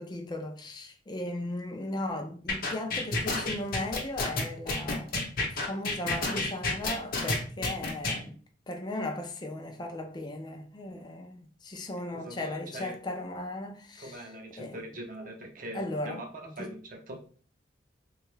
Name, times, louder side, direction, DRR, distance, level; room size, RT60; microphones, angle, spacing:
voice 1, 0.0-5.2 5.5-8.4 8.7-14.3 14.6-14.8 15.7-16.7, left 1 dB, 20° left, 0.4 m, -37 dB
sound 1, 2.5-8.2, left 2 dB, 50° left, 0.8 m, -30 dB
voice 2, 12.1-13.0 14.0-17.2, right 1 dB, 45° right, 0.7 m, -42 dB
3.5 x 2.3 x 3.1 m
head